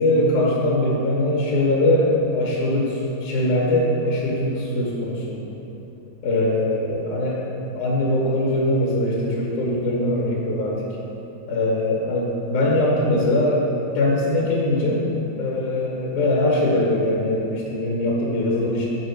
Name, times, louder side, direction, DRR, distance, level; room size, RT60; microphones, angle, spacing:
voice 1, 0.0-5.4 6.2-7.4 7.7-10.8 11.5-13.7 13.9-15.0 15.4-18.9, left 1 dB, 85° left, -3 dB, 2.8 m, -21 dB
6.1 x 5.6 x 4.7 m, 2.9 s
omnidirectional pair, 3.4 m